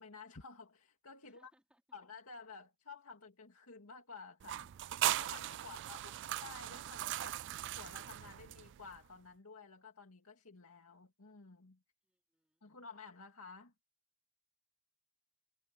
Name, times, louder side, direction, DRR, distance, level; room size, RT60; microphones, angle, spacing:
voice 1, 0.0-1.5 1.9-4.7 5.1-6.1 6.4-7.4 7.8-11.8 12.6-13.7, left 4 dB, 85° left, 2.2 m, -53 dB
voice 2, 1.2-1.8 12.0-12.8, right 1 dB, 5° right, 4.3 m, -74 dB
sound 1, 4.4-9.0, right 13 dB, 55° right, 0.3 m, -39 dB
head